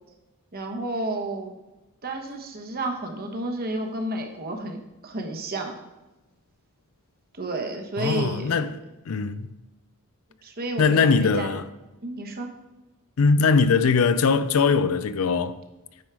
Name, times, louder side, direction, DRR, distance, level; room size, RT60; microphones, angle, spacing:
voice 1, 0.5-1.5 2.0-5.8 7.3-8.7 10.4-11.6 12.0-12.5, right 2 dB, 45° right, 1.1 m, -31 dB
voice 2, 8.0-8.7 9.1-9.5 10.8-11.6 13.2-15.6, left 5 dB, 70° left, 0.5 m, -21 dB
9.1 x 4.7 x 4.7 m
head